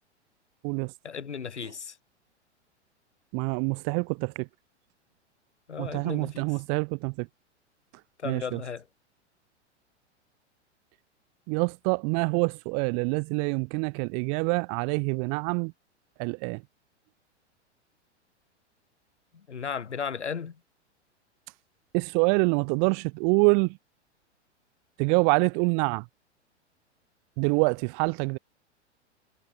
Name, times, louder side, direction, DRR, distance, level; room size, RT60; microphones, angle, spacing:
voice 1, 1.0-2.0 5.7-6.5 8.2-8.8 19.5-20.6, left 6 dB, 75° left, 3.6 m, -35 dB
voice 2, 3.3-4.5 5.8-7.3 8.2-8.6 11.5-15.7 16.2-16.6 21.9-23.7 25.0-26.0 27.4-28.4, right 40 dB or more, 20° right, 0.3 m, -26 dB
figure-of-eight pair, 100°, 35 cm